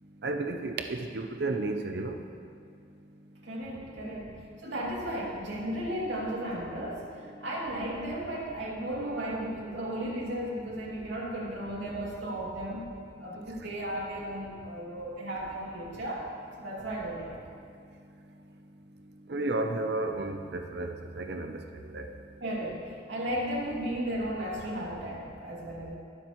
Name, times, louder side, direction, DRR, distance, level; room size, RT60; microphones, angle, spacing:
voice 1, 0.2-2.2 19.3-21.6 21.9-22.1, right 2 dB, 60° right, 5 dB, 0.6 m, -32 dB
voice 2, 3.4-12.9 13.2-16.3 16.6-17.4 22.4-25.9, right 1 dB, 80° right, -5 dB, 2.6 m, -35 dB
21.0 x 7.4 x 3.1 m, 2.4 s
head